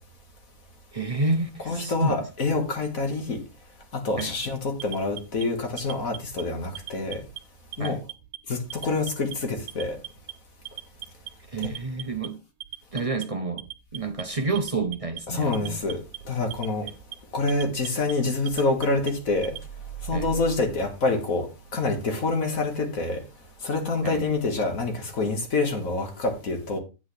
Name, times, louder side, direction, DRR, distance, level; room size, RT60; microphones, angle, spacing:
voice 1, 0.9-2.2 4.2-4.3 7.8-8.0 11.5-12.4 12.9-13.7 13.9-15.8 20.1-20.3 24.0-24.2, right 3 dB, 35° right, 0.6 m, -29 dB
voice 2, 1.7-3.4 3.9-7.2 7.8-8.0 8.5-10.0 11.6-11.7 15.3-16.9 17.3-19.6 20.0-23.2 23.6-26.8, left 3 dB, 75° left, 2.2 m, -27 dB
Alarm, 4.1-5.4 5.8-6.4 6.7-7.4 7.7-8.4 8.7-9.3 9.7-10.3 10.7-11.3 11.6-12.3 12.6-13.2 13.6-14.2 14.6-15.2 15.5-16.2 16.5-17.1 17.5-18.1 18.5-19.6, right 13 dB, 75° right, 1.2 m, -39 dB
8.6 x 8.3 x 3.4 m
omnidirectional pair, 1.5 m